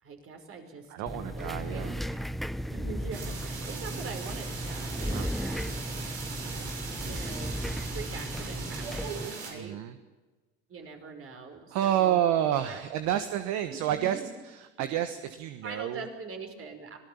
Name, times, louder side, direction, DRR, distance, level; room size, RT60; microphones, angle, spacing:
voice 1, 0.0-2.2 2.7-5.7 7.0-7.6 7.9-9.1 9.4-9.8 10.7-12.3 12.6-12.8 13.1-13.3 13.7-14.3 15.6-17.0, right 4 dB, 45° right, 4 dB, 5.6 m, -43 dB
voice 2, 0.9-2.0 5.1-5.3 9.5-9.9 11.7-14.2 14.8-16.0, right 11 dB, 60° right, 9 dB, 1.5 m, -29 dB
sound 1, 1.1-9.3, equal, ahead, 0.7 m, -35 dB
sound 2, 3.1-9.5, right 5 dB, 80° right, 6.5 m, -39 dB
25.5 x 18.0 x 7.2 m, 1.2 s
hypercardioid pair, 75°, 32 cm